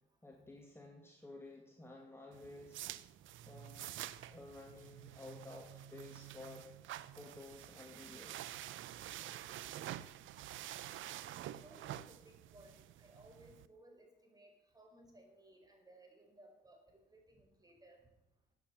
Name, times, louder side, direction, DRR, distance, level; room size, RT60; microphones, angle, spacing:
voice 1, 0.2-2.9 3.5-3.9 4.2-6.7 7.2-8.5, left 2 dB, 10° left, 0 dB, 2.4 m, -53 dB
sound 1, 2.3-13.7, right 13 dB, 80° right, 0.7 m, -48 dB
voice 2, 11.6-18.0, right 1 dB, 20° right, 2 dB, 5.2 m, -61 dB
14.5 x 9.2 x 7.2 m, 0.93 s
cardioid pair, 90°, 20 cm